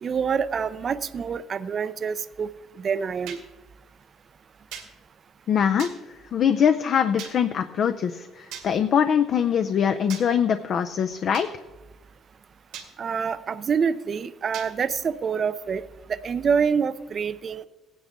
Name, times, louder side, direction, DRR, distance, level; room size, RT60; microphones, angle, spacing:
voice 1, 0.0-2.5 2.8-3.4 13.0-15.8 16.1-17.7, right 6 dB, 40° right, 14 dB, 0.5 m, -26 dB
sound 1, 3.3-3.4 4.7-4.9 5.8-6.0 7.2-7.4 8.5-8.7 10.1-10.3 11.3-11.5 12.7-12.9 14.5-14.7, right 9 dB, 90° right, 2.1 m, -38 dB
voice 2, 5.5-5.9 6.3-11.5, left 8 dB, 50° left, 9 dB, 0.5 m, -22 dB
16.5 x 10.0 x 3.6 m, 1.1 s
cardioid pair, 120°, 0 cm